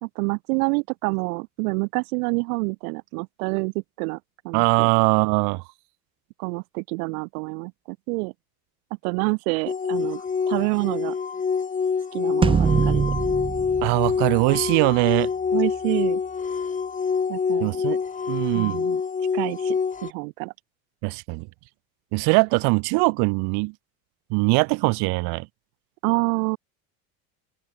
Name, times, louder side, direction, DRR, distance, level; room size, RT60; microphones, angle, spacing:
voice 1, 0.0-3.7 4.0-4.2 4.4-4.9 6.4-8.3 9.0-11.2 12.1-13.1 15.5-16.2 17.3-17.8 18.5-19.0 19.3-20.5 26.0-26.6, right 30 dB, 85° right, 1.4 m, -27 dB
voice 2, 4.5-5.6 13.8-15.3 17.6-18.0 18.3-18.8 21.0-21.5 22.1-23.7 24.3-25.5, right 31 dB, 65° right, 1.5 m, -21 dB
sound 1, 9.7-20.1, left 5 dB, 20° left, 2.8 m, -26 dB
sound 2, 12.4-15.0, right 6 dB, 15° right, 0.5 m, -23 dB
open air
cardioid pair, 145°, 42 cm